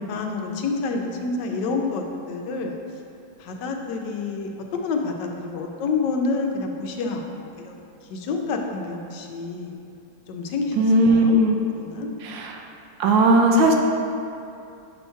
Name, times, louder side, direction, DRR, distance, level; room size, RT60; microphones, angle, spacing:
voice 1, 0.1-2.8 3.4-7.8 8.1-9.7 10.3-11.4 11.8-12.1, left 4 dB, 70° left, 2 dB, 1.2 m, -28 dB
voice 2, 10.8-11.6 12.2-12.5 13.0-13.7, right 1 dB, 80° right, 2 dB, 1.4 m, -17 dB
7.1 x 2.9 x 5.5 m, 2.6 s
omnidirectional pair, 2.0 m